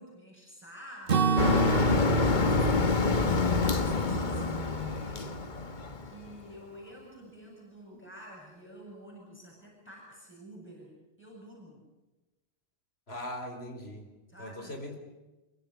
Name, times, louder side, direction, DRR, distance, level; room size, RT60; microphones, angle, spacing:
voice 1, 0.0-5.4 6.0-11.8 14.3-14.8, equal, 10° left, -2 dB, 7.8 m, -49 dB
Acoustic guitar / Strum, 1.1-5.0, right 5 dB, 60° right, 1.5 m, -31 dB
Motor vehicle (road), 1.4-6.3, left 3 dB, 50° left, 1.4 m, -27 dB
voice 2, 13.1-14.1 14.4-15.0, left 1 dB, 75° left, 4 dB, 4.6 m, -40 dB
27.0 x 24.0 x 7.0 m, 1.1 s
omnidirectional pair, 1.1 m